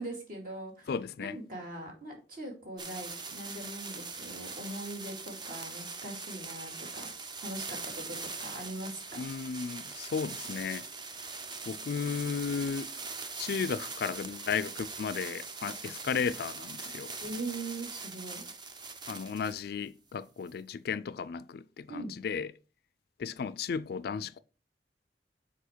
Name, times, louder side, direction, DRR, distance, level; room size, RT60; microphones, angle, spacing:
voice 1, 0.0-0.9 1.2-7.1 7.4-9.2 17.2-18.4 21.9-22.1, right 2 dB, 50° right, 2.5 m, -41 dB
voice 2, 0.9-1.4 9.1-10.9 11.7-12.9 13.4-17.1 19.1-22.5 23.2-24.4, left 6 dB, 60° left, 0.4 m, -34 dB
sound 1, 2.8-19.6 20.5-20.6, right 4 dB, 25° right, 0.6 m, -42 dB
7.0 x 4.4 x 4.5 m
head